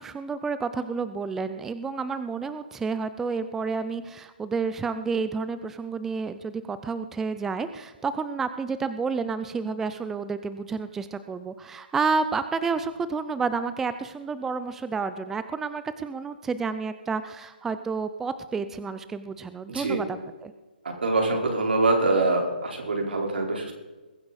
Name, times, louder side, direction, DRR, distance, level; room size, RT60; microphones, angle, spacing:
voice 1, 0.0-20.5, right 4 dB, 5° right, 11 dB, 0.4 m, -30 dB
voice 2, 19.7-20.0 20.8-23.7, right 3 dB, 80° right, 1 dB, 4.3 m, -24 dB
21.5 x 9.6 x 4.1 m, 1.2 s
hypercardioid pair, 155°, 6 cm